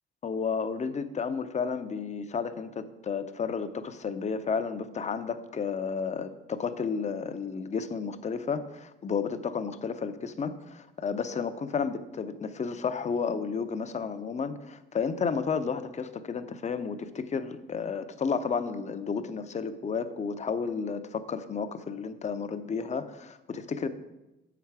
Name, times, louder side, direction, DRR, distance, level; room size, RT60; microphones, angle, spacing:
voice 1, 0.2-23.9, left 5 dB, 35° left, 10 dB, 0.6 m, -32 dB
7.2 x 5.9 x 4.7 m, 0.99 s
cardioid pair, 90°, 20 cm